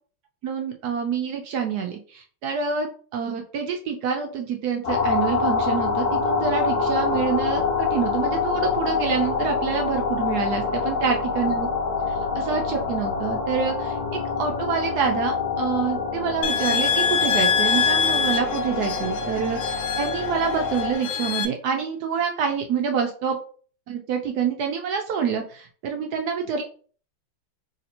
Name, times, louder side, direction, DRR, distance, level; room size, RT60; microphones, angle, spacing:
voice 1, 0.4-11.7 12.1-23.4 23.9-26.6, right 6 dB, 75° right, 4 dB, 0.9 m, -27 dB
sound 1, 4.8-20.9, left 5 dB, 60° left, 1.1 m, -26 dB
sound 2, 16.4-21.5, left 6 dB, 85° left, 1.4 m, -25 dB
3.2 x 2.6 x 4.2 m, 0.42 s
omnidirectional pair, 2.2 m